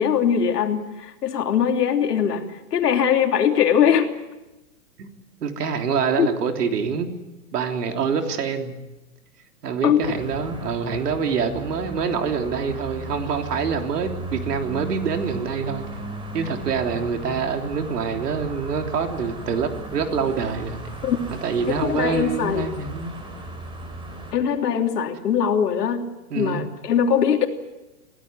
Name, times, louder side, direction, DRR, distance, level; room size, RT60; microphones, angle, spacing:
voice 1, 0.0-2.4 2.7-4.1 6.2-6.3 9.8-10.1 21.0-21.2 21.8-22.6 24.3-26.0 26.3-27.5, left 8 dB, 85° left, 4 dB, 3.2 m, -21 dB
voice 2, 5.4-7.1 7.5-8.8 9.6-15.9 16.3-20.8 21.3-23.1 26.3-26.7, right 6 dB, 85° right, 4 dB, 3.5 m, -26 dB
sound 1, 10.0-24.3, right 1 dB, 10° right, 3.2 m, -36 dB
24.5 x 16.5 x 9.6 m, 1.0 s
hypercardioid pair, 155°, 46 cm